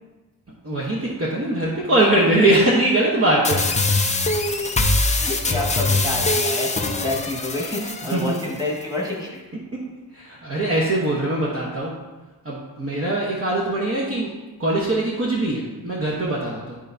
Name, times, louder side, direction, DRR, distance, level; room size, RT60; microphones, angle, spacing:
voice 1, 0.6-3.8 8.1-8.3 10.1-12.0 12.4-14.3 14.6-16.8, right 1 dB, 35° right, -5 dB, 1.1 m, -21 dB
sound 1, 3.4-8.5, left 2 dB, 20° left, 0.5 m, -22 dB
voice 2, 5.2-9.4, left 1 dB, 10° right, -4 dB, 1.8 m, -28 dB
12.0 x 4.4 x 2.7 m, 1.2 s
wide cardioid pair, 155°, 41 cm